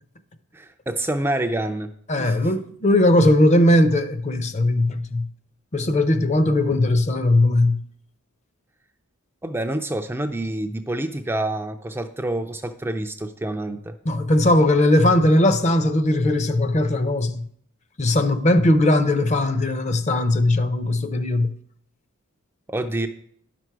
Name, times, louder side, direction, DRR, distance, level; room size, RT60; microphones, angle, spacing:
voice 1, 0.5-1.9 2.2-2.4 9.4-13.9 22.7-23.1, right 1 dB, 10° right, 0.4 m, -27 dB
voice 2, 2.1-5.3 5.7-7.8 14.0-17.5 18.0-21.5, left 1 dB, 30° left, 0.6 m, -19 dB
10.5 x 6.0 x 4.6 m
head